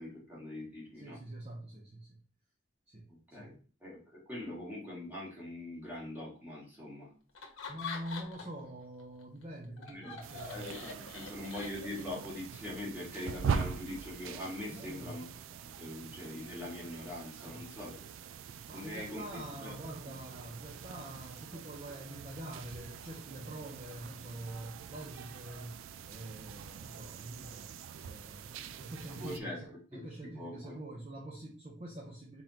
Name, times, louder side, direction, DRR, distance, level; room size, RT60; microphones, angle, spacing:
voice 1, 0.0-1.2 3.1-3.5 3.8-7.1 9.9-15.3 15.6-18.1 18.7-19.7 29.1-29.6 29.9-30.1 30.3-30.8, left 1 dB, 10° right, -5 dB, 1.8 m, -43 dB
voice 2, 0.9-2.2 2.9-3.6 7.7-10.6 11.3-11.4 14.7-15.2 17.4-17.7 18.7-25.8 26.0-32.4, right 1 dB, 30° right, -3 dB, 0.7 m, -45 dB
Laughter, 7.3-8.6 9.0-12.2, left 5 dB, 80° left, 1.0 m, -44 dB
sound 1, 10.2-29.4, right 6 dB, 80° right, 0.3 m, -43 dB
4.0 x 3.7 x 2.8 m, 0.39 s
head